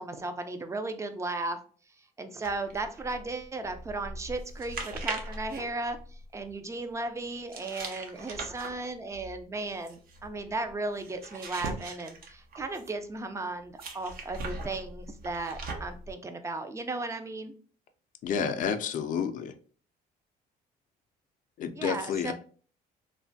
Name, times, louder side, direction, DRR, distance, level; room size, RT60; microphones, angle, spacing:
voice 1, 0.0-1.6 2.2-17.5 21.8-22.3, right 2 dB, 15° right, 0.4 m, -35 dB
sound 1, 2.4-6.5 7.5-13.1 13.8-16.1, right 3 dB, 60° right, 0.6 m, -40 dB
voice 2, 18.2-19.5 21.6-22.3, left 7 dB, 50° left, 0.4 m, -30 dB
3.1 x 2.1 x 2.6 m
cardioid pair, 110°, 17 cm